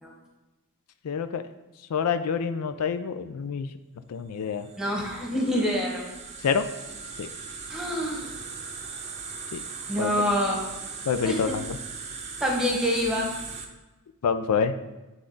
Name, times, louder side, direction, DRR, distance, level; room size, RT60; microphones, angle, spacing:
voice 1, 1.0-1.4 1.9-3.7 4.1-4.7 6.4-6.7 7.2-7.3 9.5-9.6 10.0-10.1 11.1-11.8 14.2-14.7, left 6 dB, 90° left, 10 dB, 0.4 m, -27 dB
sound 1, 4.5-13.7, right 5 dB, 30° right, 0.6 m, -39 dB
voice 2, 4.8-6.0 7.7-8.3 9.9-10.6 11.2-11.5 12.4-13.3, equal, 5° right, -2 dB, 1.2 m, -26 dB
8.0 x 3.7 x 3.8 m, 1.1 s
head